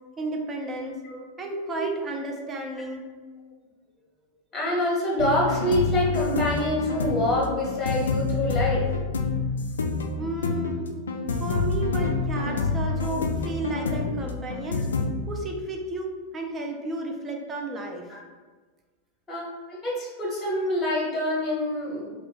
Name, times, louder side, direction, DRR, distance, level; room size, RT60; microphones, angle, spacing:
voice 1, 0.2-1.0 1.4-3.1 10.2-10.9 11.3-14.9 15.3-18.1, right 2 dB, 20° right, 2 dB, 0.5 m, -33 dB
voice 2, 4.5-8.9 19.3-22.1, left 1 dB, 20° left, -5 dB, 1.0 m, -26 dB
sound 1, 5.2-15.1, left 4 dB, 70° left, 0.3 m, -27 dB
2.9 x 2.4 x 3.8 m, 1.4 s
figure-of-eight pair, 90°, 0 cm